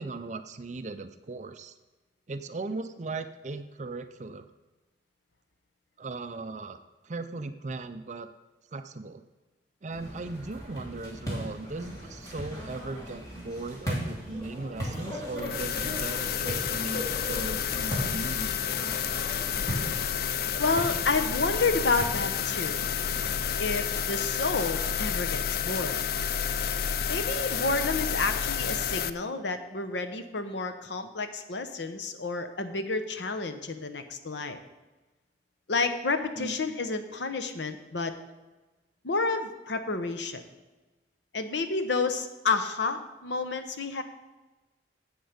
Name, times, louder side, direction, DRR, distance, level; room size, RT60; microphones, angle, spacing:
voice 1, 0.0-1.7 2.3-4.5 6.0-6.8 7.0-8.3 8.7-9.2 9.8-18.8 36.4-36.5, right 3 dB, 40° right, 9 dB, 0.5 m, -38 dB
sound 1, 9.9-23.5, equal, 20° left, 2.9 m, -38 dB
sound 2, 15.4-29.1, left 8 dB, 55° left, 0.4 m, -30 dB
voice 2, 20.6-22.8 23.6-26.0 27.1-34.6 35.7-38.1 39.0-40.4 41.3-44.0, left 3 dB, 80° left, 9 dB, 0.9 m, -30 dB
10.5 x 7.9 x 5.1 m, 1.2 s
head